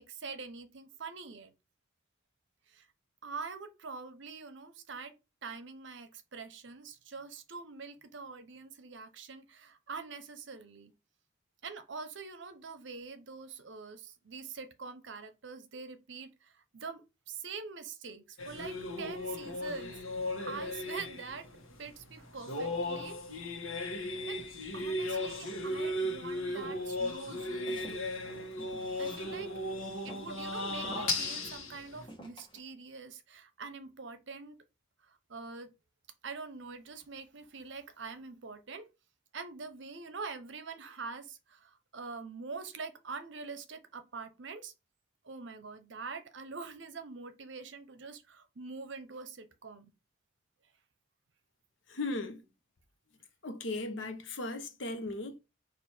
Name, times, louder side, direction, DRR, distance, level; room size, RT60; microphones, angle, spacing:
voice 1, 0.0-1.5 2.7-2.8 3.2-5.1 5.4-10.9 11.6-16.3 16.7-19.9 20.5-21.5 21.8-23.2 23.7-23.8 24.3-24.5 24.7-28.1 29.0-29.6 30.0-34.6 35.3-35.7 36.2-38.9 39.3-44.7 45.2-49.9, right 4 dB, 60° right, 0.7 m, -44 dB
sound 1, 18.4-32.1, left 1 dB, 85° left, 1.1 m, -36 dB
Walk footsteps, 27.4-29.7 30.1-30.4 30.8-31.4 32.1-32.6, right 1 dB, 25° left, 1.5 m, -49 dB
voice 2, 51.9-52.5 53.4-55.4, left 2 dB, 65° left, 0.9 m, -37 dB
4.4 x 2.6 x 4.3 m
head